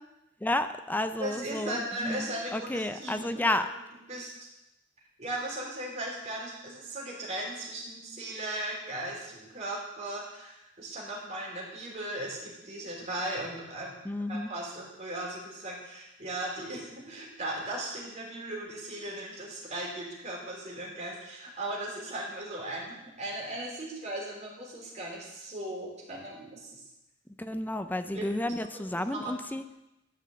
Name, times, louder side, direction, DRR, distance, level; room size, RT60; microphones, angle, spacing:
voice 1, 0.4-3.7 14.0-14.5 27.4-29.6, left 1 dB, 10° left, 9 dB, 0.5 m, -31 dB
voice 2, 1.2-3.6 4.1-4.3 5.2-13.9 14.3-26.8 28.1-28.3 28.7-29.4, right 1 dB, 35° right, -3 dB, 3.5 m, -37 dB
11.0 x 5.8 x 7.6 m, 0.92 s
head